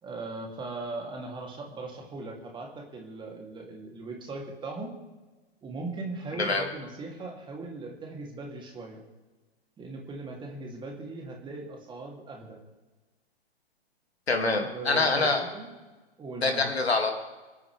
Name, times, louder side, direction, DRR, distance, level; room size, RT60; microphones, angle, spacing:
voice 1, 0.0-4.9 5.6-9.0 9.8-12.6 14.6-15.7 16.2-16.7, right 3 dB, 15° right, 1 dB, 2.9 m, -39 dB
voice 2, 14.3-15.4 16.4-17.1, left 3 dB, 75° left, 4 dB, 2.5 m, -25 dB
27.0 x 9.5 x 3.5 m, 1.2 s
figure-of-eight pair, 110°, 32 cm